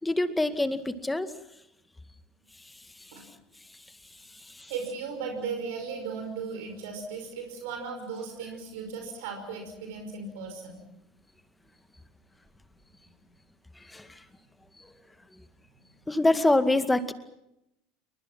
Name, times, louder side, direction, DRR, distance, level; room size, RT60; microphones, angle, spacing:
voice 1, 0.0-1.3 4.5-4.7 13.9-14.1 16.1-17.1, left 2 dB, 10° left, 11 dB, 2.1 m, -25 dB
voice 2, 4.7-10.8, right 5 dB, 60° right, 4 dB, 5.5 m, -36 dB
29.0 x 24.0 x 6.0 m, 0.84 s
figure-of-eight pair, 70°, 0 cm